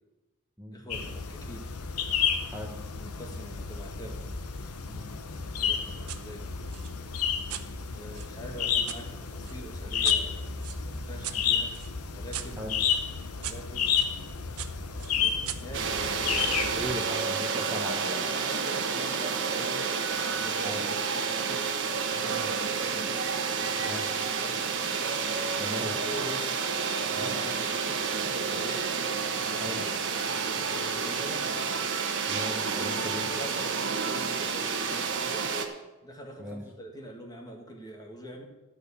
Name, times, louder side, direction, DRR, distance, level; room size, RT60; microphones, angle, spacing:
voice 1, 0.7-1.7 2.9-4.3 5.5-6.5 7.9-11.8 12.1-12.7 13.4-14.0 14.7-15.9 18.3-21.6 22.1-24.0 24.4-24.7 25.8-26.5 27.0-28.9 29.3-29.7 30.0-31.6 32.9-35.6 36.0-38.5, equal, 15° left, 1 dB, 1.8 m, -44 dB
sound 1, 0.9-16.9, left 7 dB, 85° left, 1.0 m, -31 dB
sound 2, 6.1-6.2 6.7-9.0 9.5-14.1 14.6-16.5, right 11 dB, 75° right, 0.8 m, -41 dB
sound 3, 15.7-35.7, right 5 dB, 55° right, 1.2 m, -30 dB
voice 2, 16.7-18.3 20.6-20.8 22.3-22.5 23.8-24.1 25.6-25.9 27.1-27.3 29.6-29.9 32.3-33.3 36.4-36.6, equal, 10° right, -2 dB, 1.2 m, -38 dB
12.5 x 5.3 x 8.4 m, 1.1 s
head